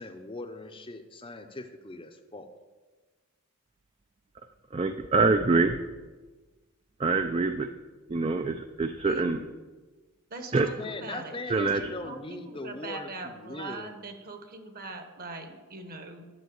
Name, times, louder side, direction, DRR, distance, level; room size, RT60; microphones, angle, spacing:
voice 1, 0.0-2.5 10.8-13.9, left 2 dB, 25° left, 6 dB, 0.6 m, -40 dB
voice 2, 4.7-5.8 7.0-7.7 8.1-9.4 10.5-10.7 11.5-11.8, right 3 dB, 25° right, 7 dB, 0.4 m, -25 dB
voice 3, 9.0-9.5 10.3-16.3, right 3 dB, 40° right, 6 dB, 1.2 m, -41 dB
10.5 x 5.7 x 7.9 m, 1.3 s
head